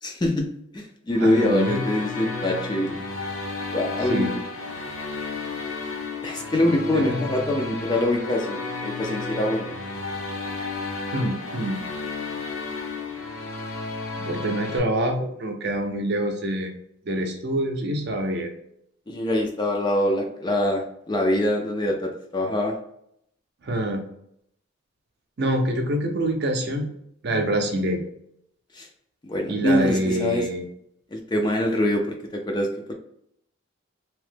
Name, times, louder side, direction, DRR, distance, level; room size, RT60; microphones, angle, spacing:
voice 1, 0.0-2.9 3.7-4.4 6.2-9.7 19.1-22.8 28.7-28.9 29.2-30.5 31.1-32.0 32.3-32.9, left 1 dB, 20° left, 3 dB, 0.3 m, -24 dB
sound 1, 1.1-14.8, left 3 dB, 70° left, 0.7 m, -32 dB
voice 2, 1.2-1.8 4.0-4.3 6.9-7.3 11.1-11.8 14.2-16.7 17.0-18.5 23.6-24.0 25.4-26.9 27.2-28.0 29.5-30.6, right 1 dB, 50° right, 3 dB, 0.5 m, -25 dB
2.9 x 2.1 x 3.2 m, 0.72 s
head